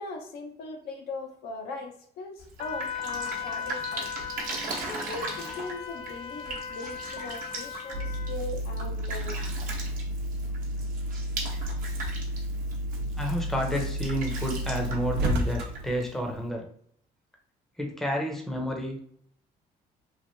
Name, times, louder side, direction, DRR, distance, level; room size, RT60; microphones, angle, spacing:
voice 1, 0.0-4.1 4.8-9.4, left 3 dB, 70° left, 3 dB, 0.6 m, -39 dB
Drip, 2.4-16.5, right 3 dB, 55° right, 0.8 m, -40 dB
Wind instrument woodwind instrument, 2.6-8.4, left 7 dB, 35° left, 0.3 m, -37 dB
sound 1, 7.9-16.0, equal, 75° right, 0.6 m, -31 dB
voice 2, 13.1-16.7 17.8-19.0, equal, ahead, 1 dB, 0.6 m, -30 dB
3.1 x 2.4 x 2.7 m, 0.62 s
cardioid pair, 110°, 17 cm